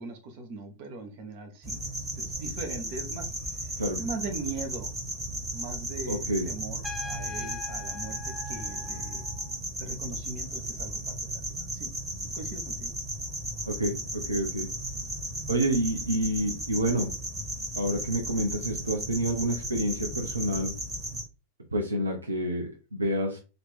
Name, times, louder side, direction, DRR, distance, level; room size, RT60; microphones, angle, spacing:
voice 1, 0.0-4.9 5.5-9.2 9.8-11.9 12.3-12.9, right 3 dB, 45° right, 5 dB, 1.2 m, -40 dB
sound 1, 1.6-21.2, right 1 dB, 20° right, 1.4 m, -35 dB
voice 2, 6.1-6.5 13.7-14.7 15.5-17.1 17.7-20.7 21.7-23.4, right 1 dB, 80° right, 2 dB, 0.7 m, -28 dB
Trumpet, 6.8-9.5, left 5 dB, 5° left, 0.6 m, -41 dB
3.9 x 2.9 x 3.6 m, 0.32 s
figure-of-eight pair, 90°, 0 cm